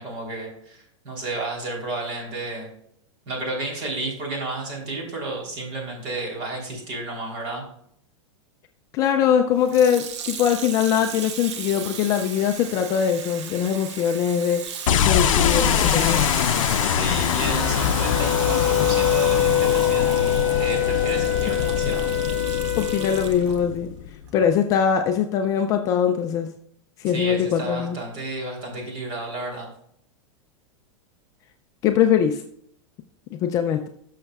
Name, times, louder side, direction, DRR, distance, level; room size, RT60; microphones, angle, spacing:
voice 1, 0.0-2.7 3.3-7.6 16.8-22.1 27.0-29.7, right 2 dB, 40° right, -1 dB, 3.3 m, -32 dB
voice 2, 8.9-14.7 15.0-16.3 22.8-23.9 24.3-26.5 27.0-28.0 31.8-32.4 33.4-33.9, left 8 dB, 20° left, 5 dB, 0.3 m, -22 dB
Water tap faucet / Sink (filling or washing), 9.6-23.6 24.3-24.4, right 7 dB, 60° right, 1.0 m, -35 dB
sound 1, 14.9-24.3, left 9 dB, 85° left, 0.5 m, -23 dB
Wind instrument woodwind instrument, 17.6-23.3, left 10 dB, 45° left, 1.3 m, -24 dB
12.0 x 6.5 x 2.3 m, 0.68 s
supercardioid pair, 165°, 17 cm